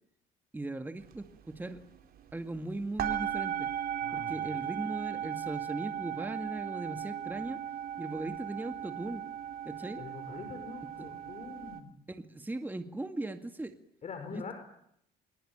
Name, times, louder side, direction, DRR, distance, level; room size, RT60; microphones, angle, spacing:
voice 1, 0.5-1.8 2.3-3.7 4.1-7.6 8.0-9.2 9.6-10.0 12.1-13.7 14.3-14.5, right 2 dB, 10° right, 8 dB, 2.1 m, -38 dB
sound 1, 1.1-1.3 1.5-2.6 3.0-11.8, right 10 dB, 60° right, 4.1 m, -37 dB
voice 2, 4.0-4.5 10.0-11.9 14.0-14.5, left 5 dB, 45° left, 6 dB, 5.3 m, -44 dB
27.0 x 22.5 x 8.9 m, 0.71 s
cardioid pair, 110°, 17 cm